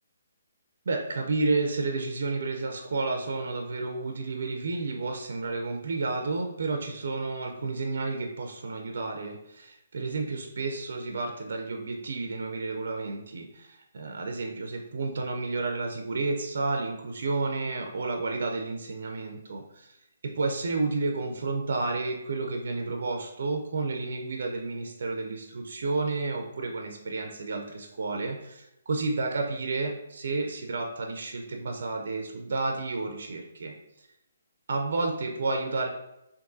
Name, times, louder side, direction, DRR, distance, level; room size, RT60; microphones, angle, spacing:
voice 1, 0.9-20.0 20.2-33.7 34.7-35.9, right 3 dB, 65° right, 3 dB, 0.5 m, -31 dB
3.6 x 2.6 x 2.5 m, 0.89 s
hypercardioid pair, 145°, 0 cm